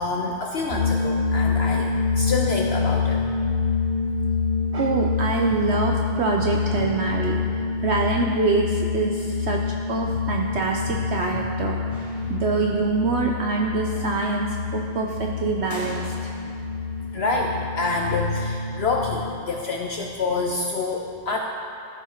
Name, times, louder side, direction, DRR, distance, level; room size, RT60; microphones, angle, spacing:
voice 1, 0.0-3.7 6.8-6.9 16.4-16.5 17.1-21.4, left 3 dB, 75° left, 1 dB, 0.5 m, -27 dB
sound 1, 0.7-19.4, left 4 dB, 40° right, 2.1 m, -26 dB
voice 2, 4.7-7.4 7.8-9.6 9.9-11.8 12.3-16.1, right 4 dB, 75° right, 0 dB, 0.6 m, -25 dB
sound 2, 11.9-12.9 15.7-16.7, equal, 10° left, 1.6 m, -41 dB
13.5 x 4.7 x 4.4 m, 2.5 s
omnidirectional pair, 1.7 m